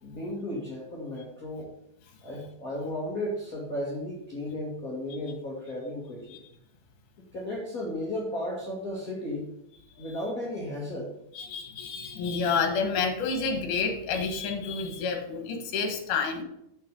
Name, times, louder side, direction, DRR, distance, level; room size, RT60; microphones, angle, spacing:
voice 1, 0.0-1.8 2.2-6.4 7.3-9.5 10.0-11.1, left 1 dB, 30° left, -4 dB, 1.8 m, -34 dB
voice 2, 11.3-16.4, left 5 dB, 70° left, 4 dB, 2.8 m, -29 dB
8.0 x 6.5 x 5.3 m, 0.80 s
omnidirectional pair, 3.9 m